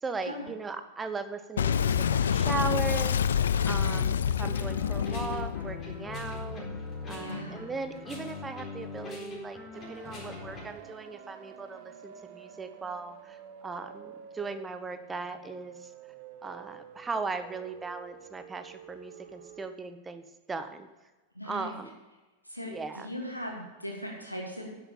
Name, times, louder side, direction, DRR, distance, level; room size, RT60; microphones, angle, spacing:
voice 1, 0.0-3.4 3.7-6.6 7.1-15.9 16.4-20.9 21.4-21.9 22.7-23.1, right 4 dB, 15° right, 9 dB, 1.1 m, -38 dB
Boom, 1.6-6.8, left 8 dB, 65° left, 0.4 m, -27 dB
voice 2, 3.6-4.0 7.2-7.7 21.3-21.7 22.5-24.7, equal, 90° left, -1 dB, 2.6 m, -38 dB
sound 1, 4.4-10.6, left 3 dB, 25° left, 4.2 m, -41 dB
sound 2, 9.7-19.7, right 9 dB, 45° right, 1.1 m, -49 dB
10.5 x 7.8 x 6.9 m, 1.2 s
figure-of-eight pair, 90°, 0 cm